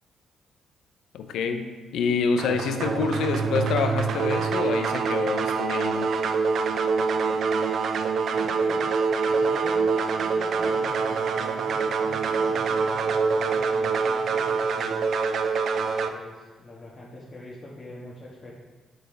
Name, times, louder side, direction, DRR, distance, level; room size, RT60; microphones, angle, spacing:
voice 1, 1.1-6.1, left 5 dB, 80° left, 7 dB, 0.6 m, -27 dB
sound 1, 2.4-16.1, right 5 dB, 65° right, 0.4 m, -25 dB
voice 2, 7.9-9.0 9.2-15.1 16.1-18.5, left 1 dB, 35° left, -6 dB, 1.5 m, -43 dB
8.0 x 5.2 x 3.3 m, 1.3 s
supercardioid pair, 60°, 0 cm